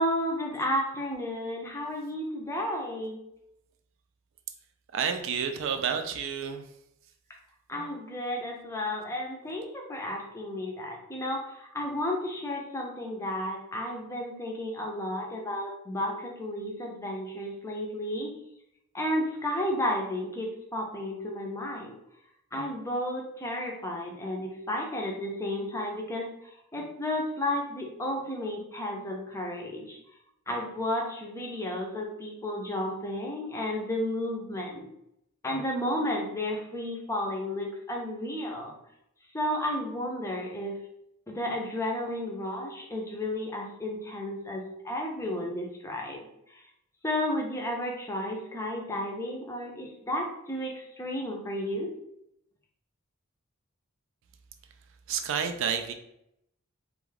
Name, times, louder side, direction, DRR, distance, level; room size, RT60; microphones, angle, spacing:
voice 1, 0.0-3.2 7.7-18.3 18.9-22.0 22.5-26.3 26.7-30.0 30.5-34.9 35.4-38.8 39.3-40.8 41.3-46.6 47.0-51.9, left 1 dB, 15° left, -1 dB, 0.4 m, -32 dB
voice 2, 4.9-6.7 55.1-55.9, right 7 dB, 60° right, 6 dB, 0.3 m, -30 dB
2.4 x 2.3 x 3.2 m, 0.78 s
head